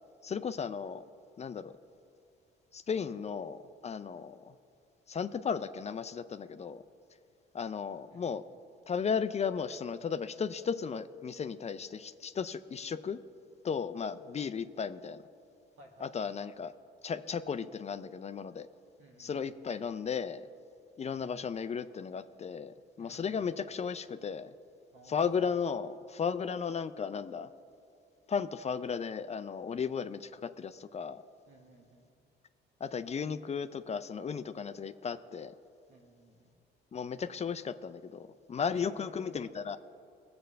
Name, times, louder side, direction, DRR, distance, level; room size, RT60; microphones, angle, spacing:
voice 1, 0.2-1.0 1.4-1.7 2.7-4.5 5.1-6.8 7.5-8.4 8.9-13.2 13.6-15.2 16.0-16.7 17.0-18.7 19.2-20.5 21.0-24.5 25.1-27.5 28.3-31.2 32.8-35.5 36.9-39.8, left 6 dB, 35° left, 12 dB, 0.4 m, -35 dB
voice 2, 8.1-8.5 15.8-16.4 19.0-19.6 23.0-23.6 24.9-25.5 31.5-32.0 35.9-36.5 38.7-39.4, right 1 dB, 85° right, 1 dB, 1.7 m, -57 dB
19.5 x 7.9 x 3.4 m, 2.4 s
cardioid pair, 90°, 20 cm